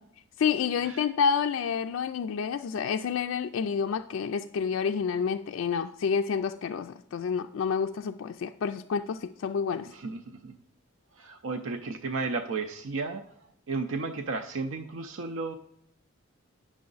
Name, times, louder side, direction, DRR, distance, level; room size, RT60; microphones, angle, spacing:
voice 1, 0.4-9.9, left 6 dB, 75° left, 6 dB, 0.3 m, -29 dB
voice 2, 9.9-10.5 11.1-13.2 13.7-15.5, right 3 dB, 70° right, 6 dB, 0.5 m, -33 dB
9.5 x 6.2 x 3.9 m, 0.75 s
head